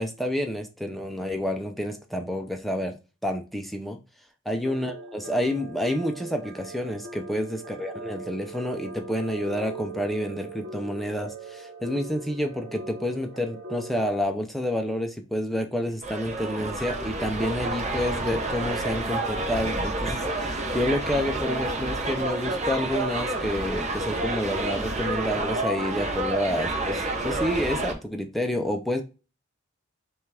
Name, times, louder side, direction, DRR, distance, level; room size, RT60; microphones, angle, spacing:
voice 1, 0.0-4.0 4.5-29.0, left 1 dB, ahead, 0.4 m, -29 dB
sound 1, 4.6-14.2, right 3 dB, 80° right, 0.9 m, -40 dB
sound 2, 16.0-27.9, right 2 dB, 35° right, 0.8 m, -29 dB
5.5 x 2.4 x 3.3 m
head